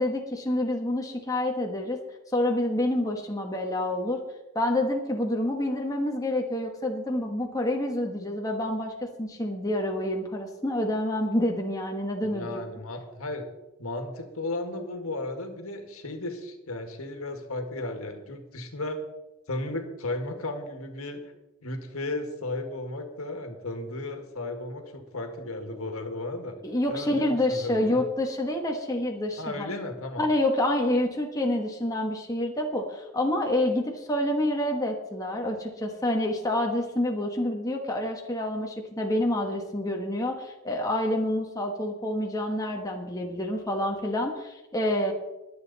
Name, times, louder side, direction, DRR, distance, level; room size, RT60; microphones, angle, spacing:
voice 1, 0.0-2.0 2.3-4.2 4.5-12.6 26.6-29.7 30.2-45.1, left 1 dB, 15° left, 1 dB, 1.2 m, -28 dB
voice 2, 12.3-13.5 13.8-19.0 19.5-21.2 21.6-26.5 26.9-28.0 29.4-30.3, left 2 dB, 75° left, 5 dB, 1.8 m, -34 dB
22.0 x 8.1 x 4.1 m, 1.0 s
head